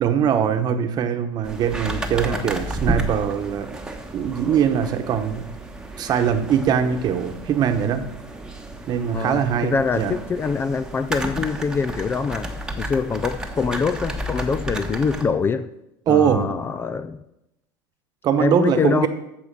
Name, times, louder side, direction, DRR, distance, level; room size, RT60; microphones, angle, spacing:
voice 1, 0.0-3.7 4.1-5.4 6.0-8.1 8.9-10.1 16.1-16.5 18.2-19.1, right 8 dB, 40° right, 8 dB, 1.1 m, -21 dB
sound 1, 1.4-15.2, right 1 dB, 5° right, 1.2 m, -32 dB
voice 2, 9.1-15.7 16.1-17.2 18.4-19.1, left 5 dB, 20° left, 12 dB, 0.4 m, -24 dB
14.0 x 4.9 x 6.8 m, 0.87 s
supercardioid pair, 130°, 11 cm